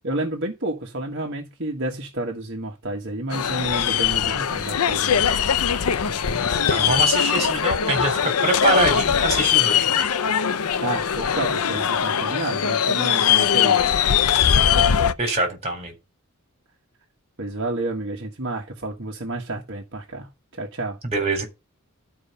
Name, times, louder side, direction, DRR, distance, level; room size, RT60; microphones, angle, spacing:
voice 1, 0.0-5.3 10.8-13.8 17.4-21.0, right 2 dB, 55° right, 1.5 m, -30 dB
sound 1, 3.3-15.1, left 8 dB, 90° left, 0.6 m, -21 dB
voice 2, 6.1-9.9 15.2-15.9 21.1-21.5, right 2 dB, 30° right, 3.6 m, -24 dB
12.5 x 4.8 x 5.6 m
head